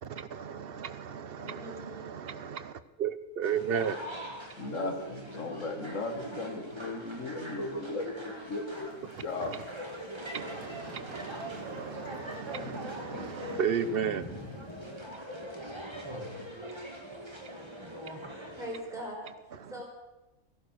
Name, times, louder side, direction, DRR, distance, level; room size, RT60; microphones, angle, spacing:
voice 1, 0.0-2.7 3.0-4.0 9.4-9.6 10.3-14.2 18.5-18.6 19.6-19.7, right 7 dB, 50° right, 13 dB, 0.9 m, -34 dB
voice 2, 1.4-2.1 16.6-16.7 18.5-19.8, equal, ahead, -2 dB, 4.6 m, -42 dB
sound 1, 3.4-18.8, equal, 20° right, 2.1 m, -42 dB
voice 3, 4.6-8.9 9.2-9.7, left 2 dB, 65° left, 5 dB, 2.2 m, -36 dB
Thunder / Rain, 8.7-15.0, left 2 dB, 15° left, 2.4 m, -48 dB
16.5 x 11.5 x 6.4 m, 1.0 s
omnidirectional pair, 1.4 m